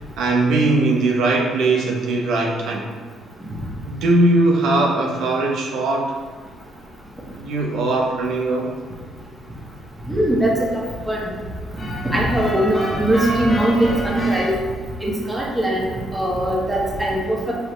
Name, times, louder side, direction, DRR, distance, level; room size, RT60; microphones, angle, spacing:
voice 1, 0.0-2.9 3.9-6.1 7.3-8.7, right 2 dB, 70° right, -1 dB, 0.8 m, -20 dB
sound 1, 6.1-14.5, equal, 30° left, 1.4 m, -31 dB
voice 2, 10.1-11.3 12.0-14.5 15.0-17.6, right 1 dB, 10° right, -4 dB, 1.6 m, -21 dB
6.4 x 4.6 x 3.3 m, 1.5 s
cardioid pair, 100°, 0 cm